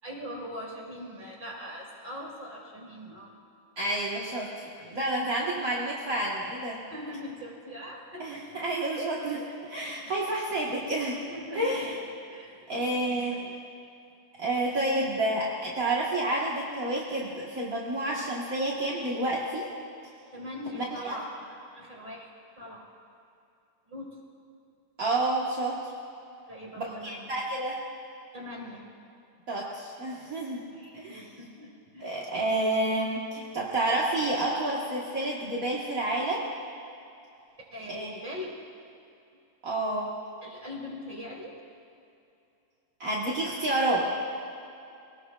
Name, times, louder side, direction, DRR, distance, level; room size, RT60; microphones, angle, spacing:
voice 1, 0.0-3.3 4.8-5.0 6.9-8.6 8.9-9.1 9.4-9.5 9.8-10.1 11.3-12.0 12.3-13.5 20.3-22.3 22.6-22.9 23.9-24.1 26.5-27.3 28.3-28.8 30.7-32.2 37.7-38.5 40.4-41.5, left 1 dB, 15° right, -3 dB, 2.8 m, -42 dB
voice 2, 3.8-4.5 4.9-6.8 8.2-9.4 9.7-11.2 11.5-11.9 12.7-13.4 14.4-19.7 20.7-21.2 25.0-25.8 26.8-27.8 29.5-30.6 30.9-31.2 32.0-36.5 37.9-38.1 39.6-40.1 43.0-44.1, right 2 dB, 40° right, -5 dB, 1.2 m, -29 dB
25.5 x 19.0 x 2.4 m, 2.6 s
omnidirectional pair, 3.7 m